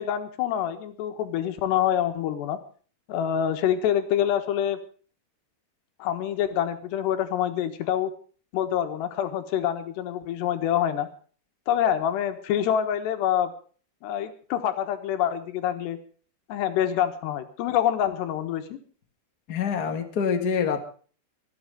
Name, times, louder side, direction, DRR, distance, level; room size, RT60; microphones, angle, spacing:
voice 1, 0.0-2.6 3.1-4.8 6.0-8.1 8.5-11.1 11.7-13.5 14.0-16.0 16.5-18.8, left 10 dB, 80° left, 8 dB, 3.5 m, -26 dB
voice 2, 19.5-20.8, left 6 dB, 60° left, 6 dB, 0.9 m, -26 dB
25.5 x 8.8 x 5.1 m, 0.41 s
omnidirectional pair, 4.8 m